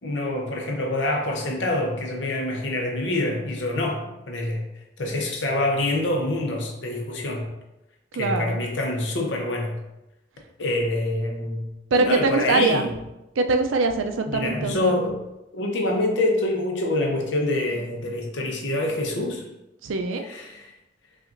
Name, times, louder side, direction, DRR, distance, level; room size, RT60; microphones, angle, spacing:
voice 1, 0.0-4.6 5.0-7.5 8.1-9.7 10.6-11.6 12.0-12.9 14.3-15.1 15.5-19.4 20.2-20.7, left 2 dB, 70° left, 1 dB, 0.8 m, -26 dB
voice 2, 8.2-8.6 11.9-12.9 13.4-15.0 19.8-20.2, right 3 dB, 90° right, 6 dB, 0.4 m, -23 dB
5.7 x 2.5 x 2.5 m, 0.95 s
head